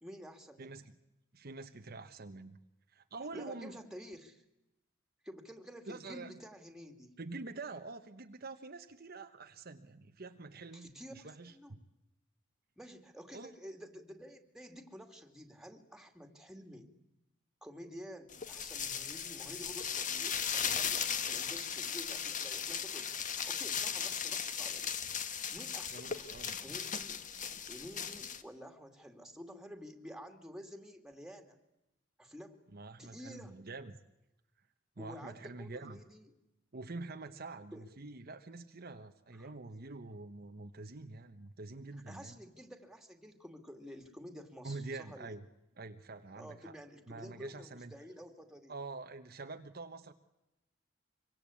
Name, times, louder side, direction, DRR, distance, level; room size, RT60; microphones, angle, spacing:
voice 1, 0.0-0.9 3.3-4.4 5.2-7.1 10.7-11.7 12.8-16.9 17.6-26.3 26.6-27.2 27.7-31.5 32.2-32.6 33.0-33.6 35.0-36.3 37.7-37.9 39.3-39.5 42.1-45.4 46.4-48.7, equal, 5° right, 6 dB, 2.6 m, -50 dB
voice 2, 0.6-0.9 1.3-2.6 2.9-3.8 5.9-6.3 7.2-11.8 13.3-13.5 25.9-26.7 32.7-34.0 35.0-36.0 36.7-42.4 44.6-45.4 45.8-46.8 47.1-47.9 48.7-50.1, right 3 dB, 50° right, 6 dB, 1.1 m, -46 dB
sound 1, 18.3-28.4, left 7 dB, 40° left, 1.4 m, -37 dB
25.0 x 24.5 x 8.6 m, 0.91 s
head